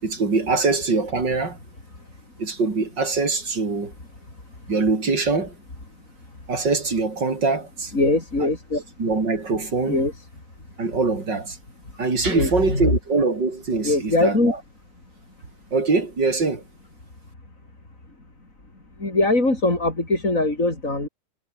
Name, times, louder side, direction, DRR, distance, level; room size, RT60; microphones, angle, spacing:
voice 1, 0.0-1.6 2.4-3.9 4.7-5.6 6.5-7.9 9.0-10.0 10.8-11.6 12.0-14.6 15.7-16.6, right 3 dB, 75° right, 4.6 m, -23 dB
voice 2, 7.9-8.8 9.9-10.3 12.2-12.9 13.8-14.5 19.0-21.1, left 2 dB, 45° left, 6.0 m, -21 dB
omnidirectional pair, 1.9 m